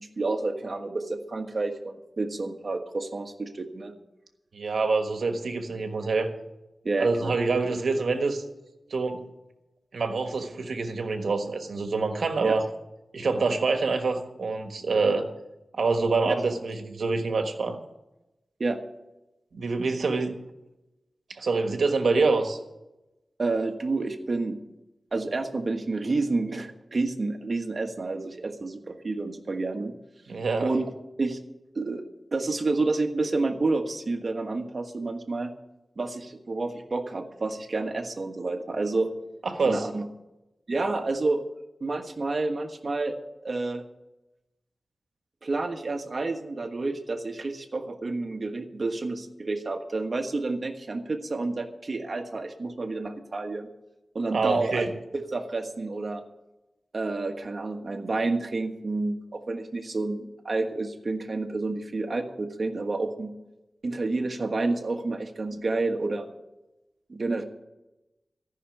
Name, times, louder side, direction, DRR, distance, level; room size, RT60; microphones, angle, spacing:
voice 1, 0.0-3.9 6.8-7.4 12.4-12.6 16.2-16.3 18.6-18.8 23.4-24.6 25.1-29.9 30.6-30.9 31.2-31.4 31.7-32.0 32.3-35.5 36.0-39.1 39.6-40.0 40.7-41.4 41.8-43.2 43.4-43.8 45.4-53.7 54.1-54.8 55.1-56.2 56.9-63.3 63.8-66.3 67.1-67.4, right 3 dB, 55° right, 6 dB, 1.4 m, -29 dB
voice 2, 4.5-6.3 7.0-8.4 8.9-9.3 9.9-12.6 13.1-15.3 15.7-17.8 19.5-20.4 21.3-22.6 30.3-30.7 39.4-39.9 54.3-54.9, right 3 dB, 90° right, 6 dB, 1.4 m, -26 dB
14.0 x 6.0 x 9.2 m, 0.97 s
wide cardioid pair, 80°, 0 cm